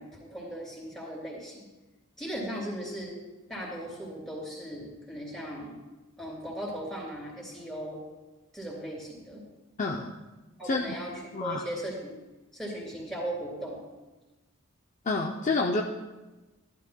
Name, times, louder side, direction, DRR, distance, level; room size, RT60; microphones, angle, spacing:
voice 1, 0.0-1.6 2.2-3.1 3.5-5.8 6.2-8.0 8.5-9.4 10.6-11.1 11.4-12.1 12.5-13.8, right 1 dB, ahead, -4 dB, 3.1 m, -37 dB
voice 2, 9.8-10.1 10.6-10.9 11.3-11.6 15.1-15.8, left 3 dB, 35° left, 1 dB, 0.5 m, -28 dB
15.0 x 11.5 x 2.2 m, 1.1 s
head